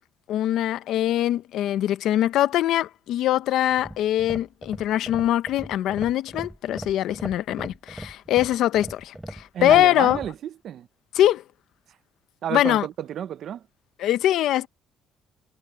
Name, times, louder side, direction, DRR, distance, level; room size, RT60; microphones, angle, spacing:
voice 1, 0.3-10.2 11.1-11.4 12.5-12.9 14.0-14.7, left 13 dB, 60° left, 0.7 m, -22 dB
sound 1, 3.7-10.3, right 1 dB, 5° right, 3.4 m, -39 dB
voice 2, 9.5-10.9 12.4-13.6, right 10 dB, 45° right, 0.5 m, -31 dB
cardioid pair, 175°, 0 cm